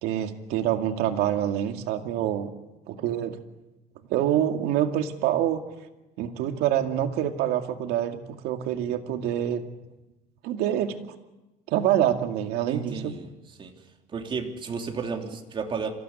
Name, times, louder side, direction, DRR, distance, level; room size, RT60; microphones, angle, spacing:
voice 1, 0.0-2.5 2.9-3.4 4.1-5.6 6.2-9.6 10.4-11.0 11.7-13.1, right 11 dB, 80° right, 5 dB, 2.3 m, -26 dB
voice 2, 12.7-13.3 13.6-13.8 14.1-15.9, right 5 dB, 30° right, 3 dB, 3.3 m, -32 dB
26.0 x 16.0 x 9.8 m, 1.0 s
cardioid pair, 135°, 16 cm